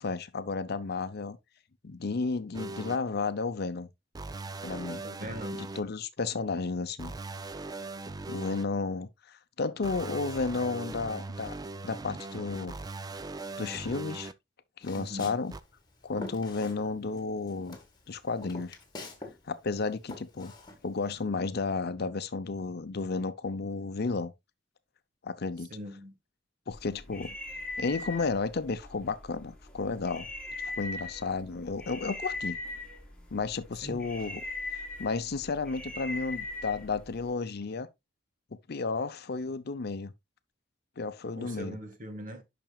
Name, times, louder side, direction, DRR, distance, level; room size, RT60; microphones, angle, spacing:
voice 1, 0.0-1.4 1.8-3.9 4.6-5.0 5.6-7.1 8.3-11.5 11.8-12.8 13.6-14.3 14.8-15.5 16.0-17.8 18.1-18.8 19.5-20.5 20.8-24.3 25.2-25.7 26.7-27.4 27.8-30.3 30.6-32.6 33.3-34.4 34.7-37.9 38.7-40.1 41.0-41.8, left 4 dB, 55° left, 0.6 m, -32 dB
sound 1, 2.5-3.0 4.1-5.8 7.0-8.6 9.8-14.3 15.5-15.6, right 3 dB, 20° right, 0.4 m, -40 dB
voice 2, 5.0-5.7 15.0-15.3 25.7-26.1 33.8-34.1 41.4-42.4, equal, 45° right, 1.6 m, -41 dB
Walk footsteps, 14.8-17.2 17.5-19.4 19.6-21.2, left 2 dB, 25° left, 1.7 m, -44 dB
sound 2, 26.7-37.3, left 2 dB, 5° left, 2.0 m, -41 dB
8.9 x 5.9 x 2.3 m
head